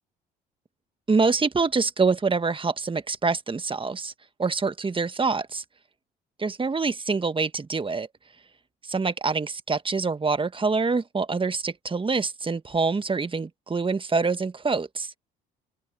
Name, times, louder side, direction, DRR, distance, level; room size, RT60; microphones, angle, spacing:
voice 1, 1.1-4.1 4.4-5.6 6.4-8.1 8.9-15.1, right 4 dB, 25° right, 1.6 m, -25 dB
open air
hypercardioid pair, 65°, 21 cm